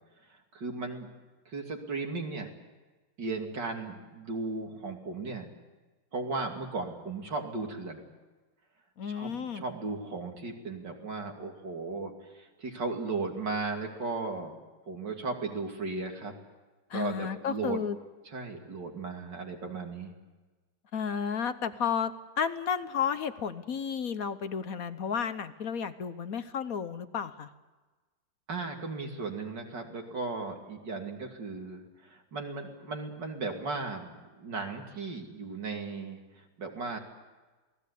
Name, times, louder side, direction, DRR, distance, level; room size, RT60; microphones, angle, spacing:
voice 1, 0.3-1.1 1.5-2.5 3.2-5.5 6.1-8.0 9.0-14.6 14.9-16.3 16.9-17.8 18.2-20.1 28.5-37.0, right 3 dB, 65° right, 2 dB, 3.4 m, -36 dB
voice 2, 9.0-9.6 16.9-18.0 20.9-27.5, left 7 dB, 55° left, 11 dB, 1.2 m, -32 dB
27.5 x 19.0 x 8.4 m, 1.2 s
omnidirectional pair, 2.0 m